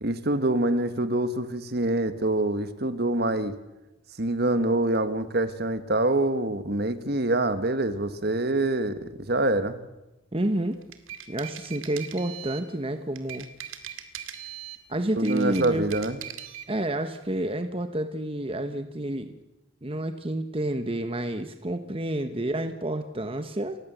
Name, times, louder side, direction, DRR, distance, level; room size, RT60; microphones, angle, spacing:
voice 1, 0.0-3.5 4.2-9.8 15.2-16.2, right 2 dB, 50° right, 11 dB, 1.5 m, -25 dB
voice 2, 10.3-10.8 11.3-13.5 14.9-15.9 16.7-19.4 19.8-23.8, right 1 dB, 25° right, 8 dB, 1.2 m, -29 dB
sound 1, 10.7-12.7 13.2-14.8 15.2-16.7, right 10 dB, 75° right, 2.2 m, -40 dB
29.5 x 15.0 x 8.1 m, 0.99 s
head